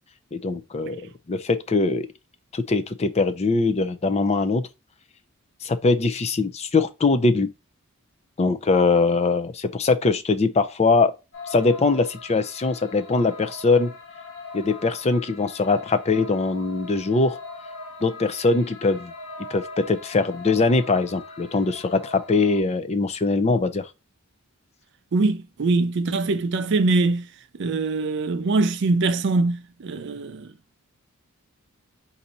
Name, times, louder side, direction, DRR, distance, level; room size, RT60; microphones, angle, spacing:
voice 1, 0.3-1.0 1.3-2.1 2.5-4.6 5.6-7.5 8.4-11.1 11.5-13.9 14.5-17.4 18.0-19.1 19.5-23.9, left 3 dB, 30° left, 0.4 m, -22 dB
sound 1, 11.3-22.6, left 3 dB, 55° left, 1.8 m, -41 dB
voice 2, 25.1-27.3 27.6-30.5, right 3 dB, 55° right, 0.4 m, -23 dB
4.0 x 2.7 x 4.2 m
head